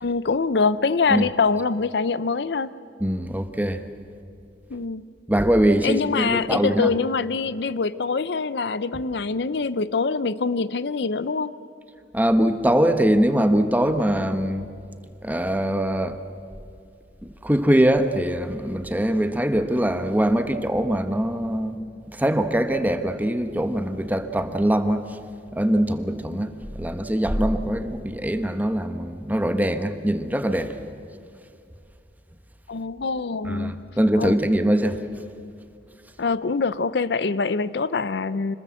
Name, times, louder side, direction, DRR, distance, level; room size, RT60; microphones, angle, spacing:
voice 1, 0.0-2.7 4.7-5.0 5.8-11.6 32.7-33.8 34.2-34.4 36.2-38.6, left 4 dB, 70° left, 16 dB, 0.6 m, -24 dB
voice 2, 3.0-3.8 5.3-6.9 12.1-14.7 15.2-16.2 17.4-21.8 22.1-25.2 25.5-30.7 33.4-35.0, right 1 dB, 10° right, 9 dB, 1.0 m, -22 dB
26.0 x 20.0 x 7.6 m, 2.4 s
head